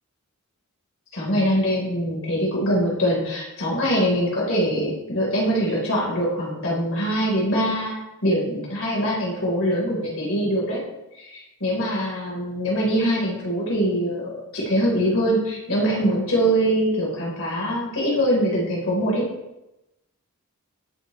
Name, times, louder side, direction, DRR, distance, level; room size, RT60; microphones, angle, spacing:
voice 1, 1.1-10.8 11.2-19.3, equal, 65° left, -4 dB, 3.9 m, -23 dB
17.5 x 7.6 x 3.1 m, 0.94 s
head